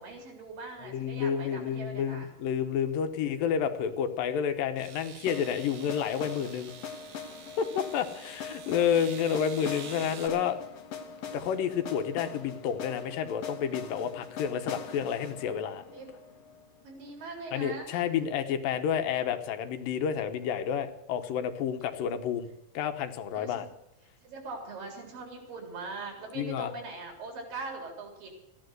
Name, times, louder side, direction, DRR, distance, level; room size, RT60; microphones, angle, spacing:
voice 1, 0.0-2.3 3.1-3.2 15.9-16.1 16.8-18.0 23.3-23.7 24.2-28.3, right 3 dB, 80° right, 2 dB, 5.4 m, -41 dB
voice 2, 0.8-6.7 7.6-7.7 7.9-10.6 11.3-15.8 17.5-22.5 22.7-23.7 26.4-26.7, left 8 dB, 80° left, 8 dB, 2.7 m, -30 dB
sound 1, 3.9-4.0 4.8-10.3, right 7 dB, 60° right, 2.1 m, -48 dB
sound 2, 5.3-17.2, left 6 dB, 55° left, 2.0 m, -42 dB
14.5 x 11.0 x 7.8 m, 0.87 s
omnidirectional pair, 3.9 m